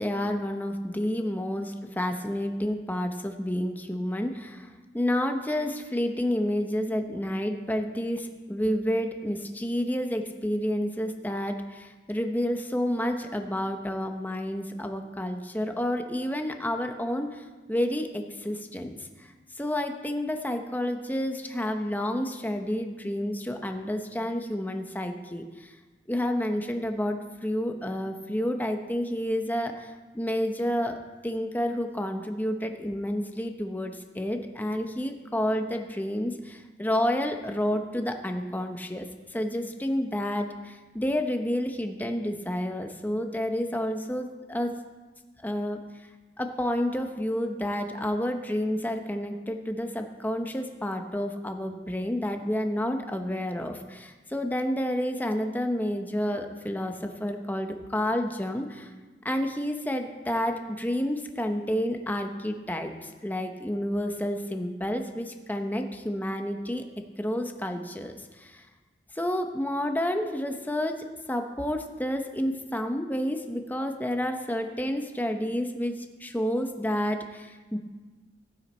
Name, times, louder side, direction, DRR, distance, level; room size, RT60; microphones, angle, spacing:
voice 1, 0.0-4.7 4.9-19.3 19.6-25.7 26.1-44.7 45.4-45.8 46.4-58.9 59.2-66.9 67.2-68.6 69.2-71.0 71.3-77.8, equal, 10° left, 5 dB, 0.9 m, -30 dB
15.0 x 9.0 x 4.4 m, 1.3 s
head